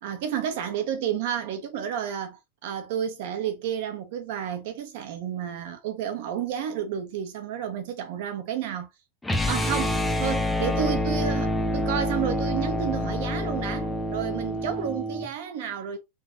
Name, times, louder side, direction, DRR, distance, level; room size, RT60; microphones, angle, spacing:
voice 1, 0.0-2.4 2.6-8.9 9.5-16.0, right 9 dB, 60° right, 1.3 m, -31 dB
sound 1, 9.2-15.3, left 1 dB, 5° left, 0.5 m, -27 dB
3.8 x 3.2 x 3.9 m
supercardioid pair, 160°, 0 cm